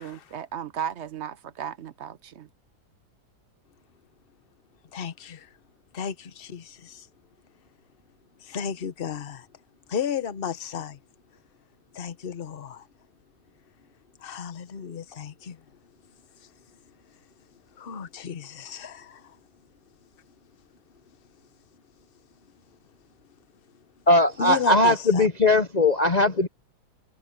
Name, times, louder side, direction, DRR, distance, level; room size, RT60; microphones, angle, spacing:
voice 1, 0.0-2.5, right 8 dB, 75° right, 0.6 m, -35 dB
voice 2, 4.9-5.5 5.9-7.1 8.4-9.5 9.9-11.0 11.9-12.9 14.2-15.6 17.8-19.4 24.4-25.3, left 7 dB, 40° left, 0.9 m, -33 dB
voice 3, 24.1-26.5, left 2 dB, 70° left, 0.4 m, -19 dB
omnidirectional pair, 2.1 m